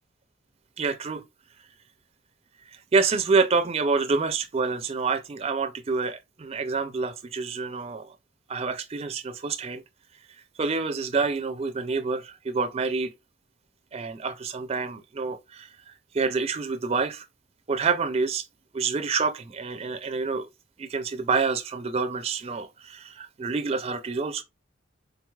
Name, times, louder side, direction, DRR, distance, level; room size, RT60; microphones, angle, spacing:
voice 1, 0.8-1.2 2.9-8.1 8.5-9.8 10.6-13.1 13.9-17.2 17.7-18.4 18.7-20.5 20.8-24.4, right 4 dB, 30° right, 0.4 m, -27 dB
4.5 x 3.7 x 2.3 m
head